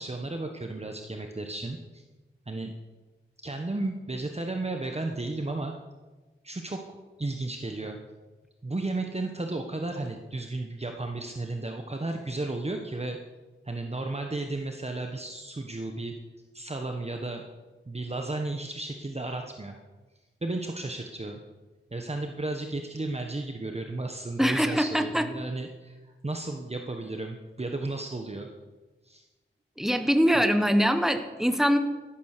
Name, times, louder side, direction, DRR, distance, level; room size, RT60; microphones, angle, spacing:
voice 1, 0.0-2.0 2.5-2.7 3.4-5.7 6.4-8.0 8.6-13.2 13.7-16.1 16.5-17.4 17.9-19.8 20.4-21.4 21.9-26.0 26.2-28.5 29.0-29.2, right 2 dB, 30° right, 4 dB, 1.2 m, -33 dB
voice 2, 24.4-25.3 29.8-31.8, equal, ahead, 8 dB, 1.3 m, -23 dB
13.5 x 11.5 x 6.7 m, 1.2 s
wide cardioid pair, 90°, 21 cm